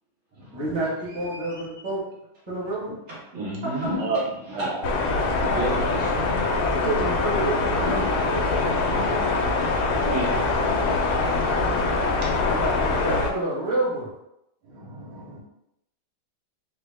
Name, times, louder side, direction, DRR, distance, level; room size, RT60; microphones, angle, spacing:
voice 1, 0.5-2.0 2.5-2.9 6.8-8.5 8.8-9.2 12.4-14.1, right 2 dB, 20° right, -8 dB, 0.9 m, -29 dB
voice 2, 1.1-1.9 2.9-4.9 5.4-6.3 10.0-10.3 11.9-12.1, right 2 dB, 60° right, -11 dB, 1.8 m, -33 dB
sound 1, 3.8-4.7 7.8-8.8, left 2 dB, 70° left, 1.2 m, -34 dB
sound 2, 4.8-13.3, left 3 dB, 85° left, 1.4 m, -23 dB
voice 3, 9.8-10.1 11.4-12.3 14.7-15.4, right 3 dB, 85° right, -5 dB, 1.7 m, -34 dB
3.9 x 2.1 x 3.3 m, 0.82 s
omnidirectional pair, 2.2 m